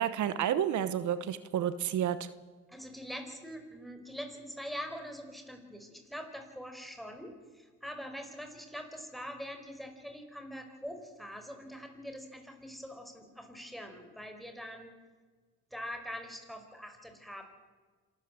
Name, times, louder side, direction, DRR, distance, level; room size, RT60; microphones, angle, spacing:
voice 1, 0.0-2.2, right 10 dB, 75° right, 13 dB, 1.1 m, -30 dB
voice 2, 2.7-14.9 15.7-17.4, equal, ahead, 5 dB, 4.9 m, -44 dB
26.5 x 13.0 x 7.8 m, 1.5 s
cardioid pair, 90°, 30 cm